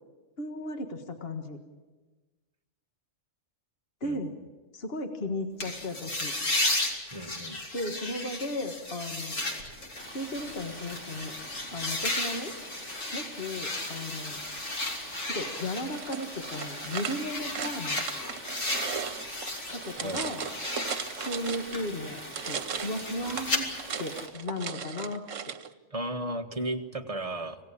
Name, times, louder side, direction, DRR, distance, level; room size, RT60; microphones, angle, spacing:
voice 1, 0.4-1.6 4.0-4.3 4.7-6.4 7.7-9.4 10.1-11.3 11.7-12.5 13.1-14.4 15.3-18.0 19.7-20.4 21.1-22.2 22.4-23.7 24.0-25.5, left 1 dB, 50° left, 5 dB, 1.8 m, -35 dB
sound 1, 5.6-19.8 20.1-23.6, left 2 dB, 85° left, 3.3 m, -35 dB
voice 2, 7.1-7.6 20.0-20.3 25.9-27.6, right 1 dB, 30° right, 4 dB, 1.4 m, -34 dB
Stream, 10.0-24.3, equal, 10° left, 4.1 m, -45 dB
sound 2, 15.9-21.9 22.2-25.7, right 7 dB, 80° right, 1.3 m, -37 dB
26.5 x 17.5 x 8.5 m, 1.2 s
omnidirectional pair, 1.3 m